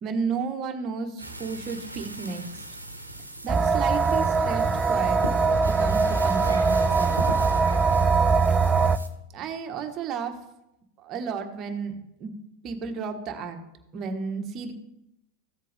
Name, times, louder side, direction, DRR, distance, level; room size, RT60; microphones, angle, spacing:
voice 1, 0.0-2.4 3.4-5.2 5.6-7.2 9.3-10.4 11.0-12.3 12.6-13.6 13.9-14.7, right 5 dB, 35° right, 5 dB, 1.5 m, -32 dB
sound 1, 1.2-9.1, right 1 dB, 90° right, 1.1 m, -38 dB
sound 2, 3.5-9.0, right 4 dB, 20° right, 0.4 m, -22 dB
14.5 x 7.5 x 3.6 m, 0.85 s
figure-of-eight pair, 85°, 0 cm